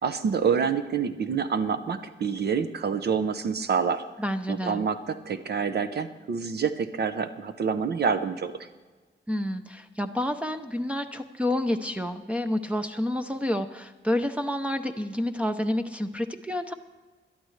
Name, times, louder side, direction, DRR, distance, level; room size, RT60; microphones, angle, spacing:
voice 1, 0.0-4.0 4.5-8.5, right 6 dB, 60° right, 9 dB, 0.7 m, -27 dB
voice 2, 4.2-4.9 9.3-16.7, left 1 dB, 5° right, 4 dB, 0.6 m, -29 dB
21.5 x 12.0 x 3.2 m, 1.3 s
wide cardioid pair, 165°, 19 cm